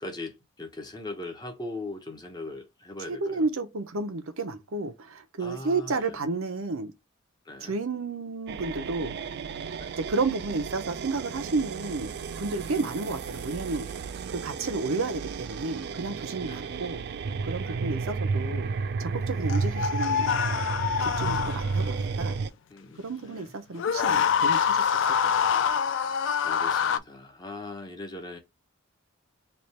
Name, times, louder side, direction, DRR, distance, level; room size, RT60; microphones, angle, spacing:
voice 1, 0.0-3.5 5.4-6.2 7.4-7.7 9.8-10.0 12.6-12.9 14.6-14.8 16.4-16.8 17.6-17.8 19.3-19.8 22.7-23.5 26.4-28.4, left 2 dB, 20° left, 0.8 m, -40 dB
voice 2, 3.1-6.9 7.6-9.2 10.0-12.1 12.4-17.0 17.4-18.7 19.0-20.3 21.0-22.4 23.0-24.9 25.2-25.3, right 3 dB, 75° right, 0.7 m, -32 dB
sound 1, 8.5-22.5, right 4 dB, 50° right, 0.3 m, -32 dB
sound 2, 19.5-21.9 23.7-27.0, left 7 dB, 60° left, 0.3 m, -25 dB
3.3 x 2.5 x 4.2 m
head